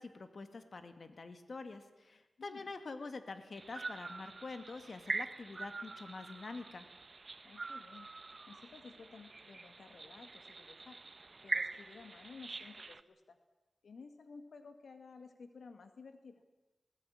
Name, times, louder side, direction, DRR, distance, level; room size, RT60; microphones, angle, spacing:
voice 1, 0.0-6.9, left 3 dB, 60° left, 9 dB, 2.1 m, -46 dB
voice 2, 2.4-2.7 7.4-8.1 8.5-11.0 11.4-13.4 13.8-16.4, left 4 dB, 85° left, 8 dB, 1.9 m, -54 dB
sound 1, 3.6-13.0, right 3 dB, 45° right, 1.0 m, -44 dB
20.5 x 19.0 x 9.9 m, 1.1 s
wide cardioid pair, 80°, 0 cm